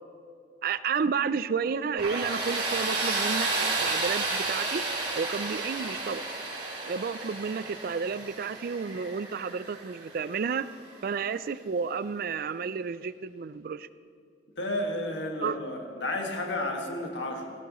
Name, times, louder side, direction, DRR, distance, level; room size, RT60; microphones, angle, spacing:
voice 1, 0.6-4.8 5.2-6.2 6.8-10.7 11.0-13.9 15.4-15.6, right 5 dB, 55° right, 16 dB, 0.4 m, -31 dB
Tools, 2.0-10.7, right 3 dB, 35° right, 4.1 m, -32 dB
voice 2, 14.6-17.5, left 1 dB, 85° left, 2 dB, 1.8 m, -32 dB
16.5 x 16.0 x 3.1 m, 2.5 s
head